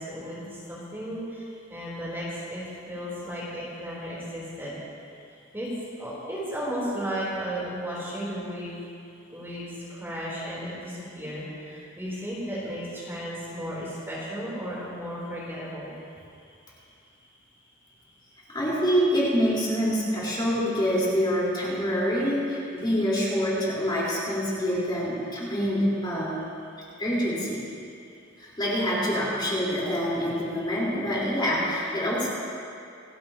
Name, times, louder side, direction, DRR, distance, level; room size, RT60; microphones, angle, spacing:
voice 1, 0.0-4.8 5.5-5.7 6.0-8.7 9.3-15.9, equal, 10° right, -8 dB, 3.6 m, -34 dB
voice 2, 18.5-26.4 27.0-27.6 28.6-32.3, equal, 25° left, -7 dB, 4.1 m, -26 dB
28.0 x 12.0 x 2.9 m, 2.5 s
head